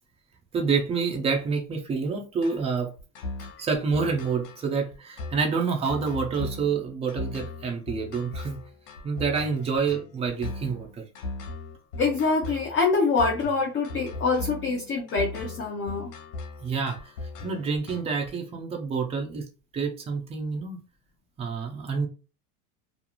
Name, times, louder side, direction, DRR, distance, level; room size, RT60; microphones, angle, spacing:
voice 1, 0.5-2.9 3.4-8.6 9.0-11.0 16.6-17.1 17.4-19.5 19.7-20.8 21.4-22.1, right 5 dB, 15° right, 0.3 m, -28 dB
sound 1, 2.4-18.3, left 3 dB, 85° left, 0.8 m, -38 dB
voice 2, 12.0-16.1, left 4 dB, 25° left, 0.7 m, -25 dB
2.4 x 2.3 x 2.9 m
supercardioid pair, 125°, 46 cm